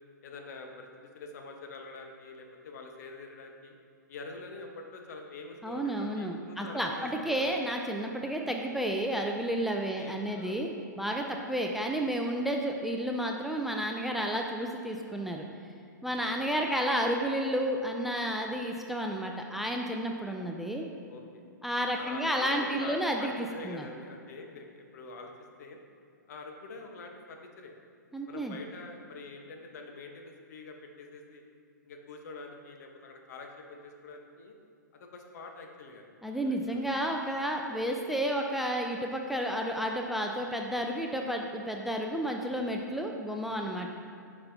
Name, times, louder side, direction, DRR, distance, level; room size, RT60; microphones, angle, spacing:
voice 1, 0.2-3.8 4.1-7.6 10.0-10.7 11.3-11.5 16.2-16.8 18.6-18.8 21.1-21.2 22.0-25.3 25.6-25.8 26.3-27.7 28.3-31.4 31.8-34.5 34.9-36.0 36.4-36.8 37.7-37.9 42.5-43.0 43.7-43.9, left 3 dB, 55° left, 3 dB, 0.9 m, -46 dB
voice 2, 5.6-10.7 11.0-15.4 16.0-20.9 21.6-23.8 28.1-28.6 36.2-43.9, equal, ahead, 1 dB, 0.4 m, -31 dB
9.5 x 5.5 x 2.7 m, 2.4 s
hypercardioid pair, 120°, 10 cm